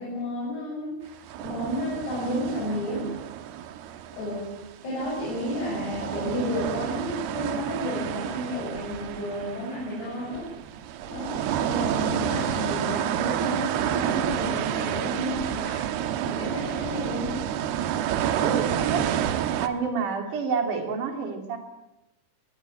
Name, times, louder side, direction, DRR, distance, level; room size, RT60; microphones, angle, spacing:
voice 1, 0.0-3.1 4.1-4.5 4.8-10.5 11.0-15.9 16.3-17.4, left 1 dB, 75° left, -5 dB, 9.5 m, -32 dB
sound 1, 1.2-4.7 5.0-19.7, right 10 dB, 80° right, 3.1 m, -29 dB
voice 2, 18.4-19.1 19.6-21.6, right 5 dB, 55° right, 5 dB, 4.2 m, -28 dB
24.5 x 19.0 x 7.9 m, 0.93 s
omnidirectional pair, 4.7 m